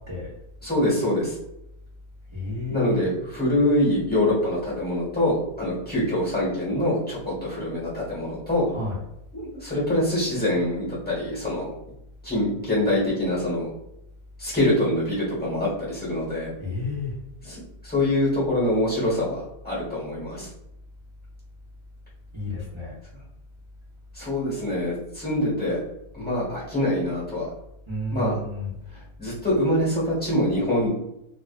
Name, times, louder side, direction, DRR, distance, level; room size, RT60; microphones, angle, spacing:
voice 1, 0.6-1.3 2.7-8.7 9.3-11.7 12.2-13.7 14.4-16.5 17.4-20.5 24.1-25.8 26.1-27.5 28.1-28.3 29.2-30.9, left 1 dB, 5° left, -7 dB, 1.2 m, -24 dB
voice 2, 2.3-3.0 8.7-9.0 16.6-17.1 22.3-22.9 27.9-28.8, left 2 dB, 45° right, -7 dB, 0.4 m, -31 dB
2.6 x 2.4 x 2.4 m, 0.84 s
omnidirectional pair, 1.6 m